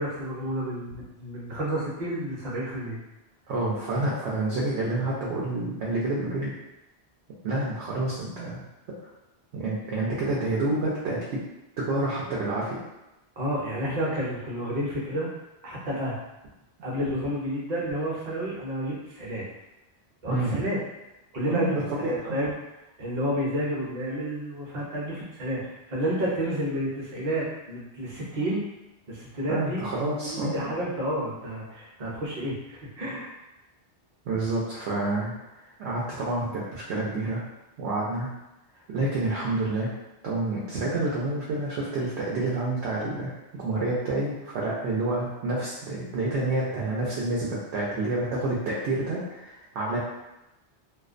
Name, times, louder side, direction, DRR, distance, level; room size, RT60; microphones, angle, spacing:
voice 1, 0.0-3.0 13.4-15.3 15.6-16.2 16.8-19.4 20.2-20.8 21.3-22.5 23.0-28.6 29.1-29.9 30.2-33.3, right 1 dB, 50° right, -4 dB, 0.7 m, -30 dB
voice 2, 3.5-6.5 7.4-8.6 9.5-11.4 11.8-12.8 20.3-20.6 21.5-22.4 29.5-30.5 34.3-35.3 35.8-37.4 37.8-38.3 38.9-39.9 40.2-43.3 43.6-50.0, right 2 dB, 85° right, -5 dB, 0.9 m, -28 dB
2.4 x 2.1 x 2.4 m, 0.96 s
omnidirectional pair, 1.1 m